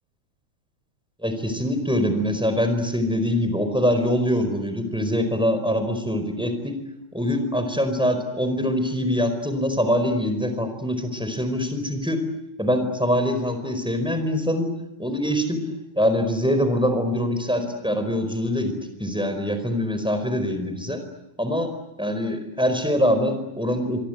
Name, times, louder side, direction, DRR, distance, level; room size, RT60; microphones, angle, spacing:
voice 1, 1.2-6.7 7.1-12.2 12.6-14.7 15.0-15.6 16.0-21.0 21.4-21.7 22.0-24.0, equal, ahead, 8 dB, 4.4 m, -24 dB
26.5 x 25.0 x 8.1 m, 0.90 s
omnidirectional pair, 4.3 m